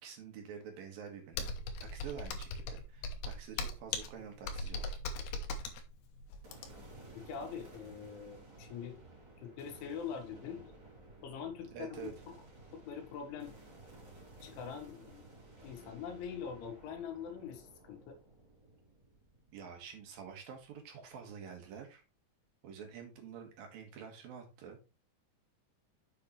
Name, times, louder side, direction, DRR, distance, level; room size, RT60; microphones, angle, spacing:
voice 1, 0.0-1.5 1.8-4.9 11.7-12.1 19.5-22.0 22.6-24.9, right 7 dB, 60° right, 3.1 m, -48 dB
Computer keyboard, 1.3-7.0, left 3 dB, 75° left, 2.7 m, -39 dB
sound 1, 6.4-20.7, right 2 dB, 30° right, 2.8 m, -55 dB
voice 2, 7.2-9.0 9.4-10.7 11.2-12.3 12.7-13.6 14.4-15.3 15.6-18.2, left 7 dB, 90° left, 3.8 m, -43 dB
7.7 x 6.5 x 3.2 m
omnidirectional pair, 5.3 m